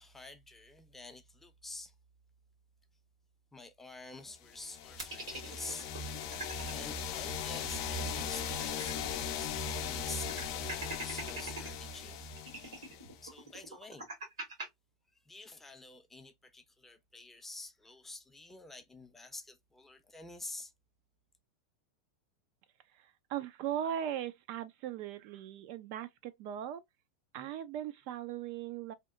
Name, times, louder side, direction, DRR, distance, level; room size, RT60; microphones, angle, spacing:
voice 1, 0.0-1.9 3.5-6.0 6.6-12.2 13.2-14.1 15.1-20.7, left 2 dB, 10° left, 0.6 m, -48 dB
sound 1, 4.5-13.3, left 6 dB, 60° left, 0.5 m, -38 dB
sound 2, 5.0-6.7 7.1-7.2 7.5-9.2 9.5-9.6 10.1-11.7 12.4-14.7, right 2 dB, 90° right, 1.5 m, -44 dB
voice 2, 22.9-26.8 27.3-28.9, right 10 dB, 55° right, 0.4 m, -39 dB
2.8 x 2.0 x 2.4 m
hypercardioid pair, 105°, 3 cm